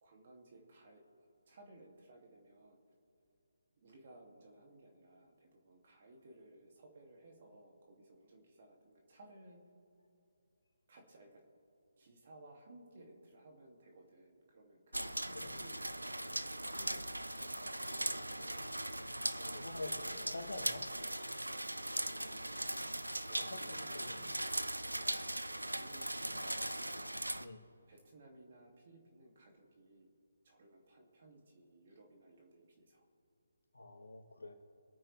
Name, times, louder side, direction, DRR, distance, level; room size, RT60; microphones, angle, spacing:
voice 1, 0.0-1.0 1.5-2.8 3.8-9.6 10.9-11.4 12.0-15.8 16.1-18.6 19.3-20.6 22.2-22.8 23.3-24.3 25.7-27.0 27.9-30.1 30.4-33.0, right 1 dB, 40° right, 1 dB, 2.7 m, -59 dB
sound 1, 14.9-27.5, right 1 dB, 85° right, 0.7 m, -39 dB
voice 2, 19.5-19.9 20.3-20.8 23.5-24.2 27.4-27.6 33.7-34.5, left 2 dB, 65° left, 4 dB, 2.1 m, -46 dB
24.5 x 9.0 x 3.5 m, 2.6 s
figure-of-eight pair, 145°, 0 cm